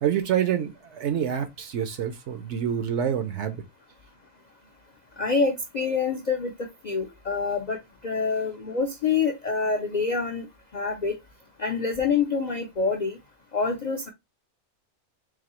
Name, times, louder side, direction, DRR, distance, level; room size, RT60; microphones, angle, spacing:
voice 1, 0.0-3.6, right 9 dB, 65° right, 0.8 m, -27 dB
voice 2, 5.2-7.8 8.0-10.5 10.7-11.1 11.6-13.2 13.5-14.1, left 4 dB, 60° left, 0.4 m, -26 dB
4.0 x 2.7 x 2.9 m
omnidirectional pair, 1.4 m